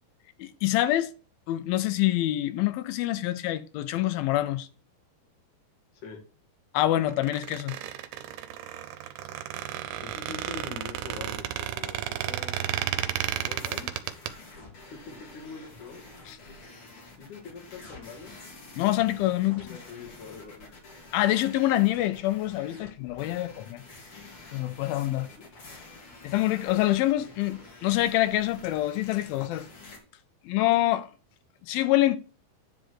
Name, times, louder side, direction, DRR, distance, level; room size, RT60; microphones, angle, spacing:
voice 1, 0.4-1.1 1.5-4.7 6.7-7.8 16.3-16.4 18.8-19.7 21.1-23.8 24.5-25.3 26.2-29.7 30.5-31.1 31.7-32.2, left 15 dB, 80° left, 2.3 m, -26 dB
Squeak, 7.1-14.3, right 12 dB, 80° right, 2.6 m, -33 dB
voice 2, 10.0-12.7 13.4-13.9 14.9-16.0 17.2-18.3 19.3-20.7 25.2-25.5, left 5 dB, 55° left, 3.1 m, -44 dB
sound 1, 12.9-30.0, left 3 dB, 40° left, 2.6 m, -48 dB
10.0 x 3.8 x 6.2 m
omnidirectional pair, 4.5 m